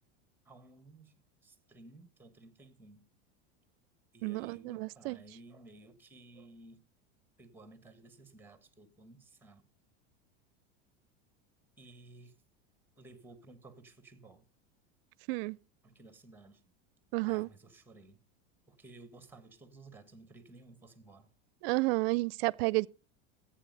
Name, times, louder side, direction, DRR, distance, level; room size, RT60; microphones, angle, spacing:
voice 1, 0.4-1.1 1.4-3.1 4.1-6.9 7.4-9.6 11.8-12.4 13.0-14.4 15.8-16.6 17.3-18.2 18.7-21.3, right 2 dB, 5° right, 1.5 m, -55 dB
voice 2, 4.2-5.2 15.3-15.6 17.1-17.5 21.6-22.9, right 25 dB, 60° right, 0.5 m, -31 dB
14.0 x 8.6 x 5.4 m
supercardioid pair, 135°, 33 cm